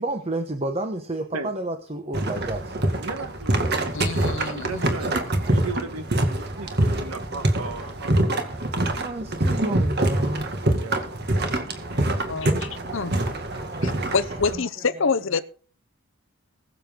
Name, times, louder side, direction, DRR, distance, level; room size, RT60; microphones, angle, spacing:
voice 1, 0.0-2.9 5.4-5.6 6.5-7.2 7.8-8.0 8.4-8.7 9.0-10.5 11.9-13.0 13.2-14.0 14.3-14.7 15.3-15.4, right 1 dB, 25° right, 1.0 m, -32 dB
sound 1, 2.1-14.6, right 1 dB, 45° right, 2.0 m, -25 dB
voice 2, 3.0-3.8 4.3-5.1 5.5-6.7 7.0-8.3 10.8-11.0, right 3 dB, 85° right, 1.5 m, -35 dB
voice 3, 3.9-4.9 12.3-13.2 13.8-15.4, left 4 dB, 60° left, 0.7 m, -27 dB
21.0 x 7.5 x 3.8 m
head